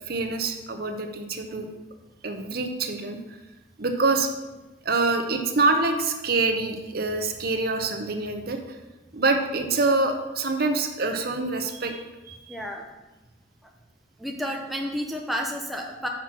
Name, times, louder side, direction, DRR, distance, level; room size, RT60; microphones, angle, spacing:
voice 1, 0.1-1.7 2.2-3.2 3.8-4.3 4.8-8.8 9.1-12.6, right 3 dB, 50° right, 5 dB, 0.8 m, -26 dB
voice 2, 12.5-12.9 13.6-13.7 14.2-16.1, equal, ahead, 0 dB, 0.6 m, -31 dB
6.0 x 6.0 x 5.9 m, 1.1 s
head